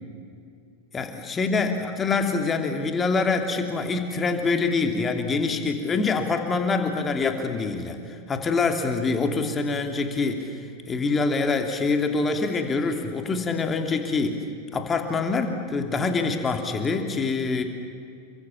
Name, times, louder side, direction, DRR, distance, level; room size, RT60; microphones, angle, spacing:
voice 1, 0.9-10.6 10.9-14.4 14.7-17.6, left 4 dB, 20° left, 5 dB, 2.8 m, -25 dB
29.5 x 24.0 x 7.3 m, 2.4 s
figure-of-eight pair, 90°, 0 cm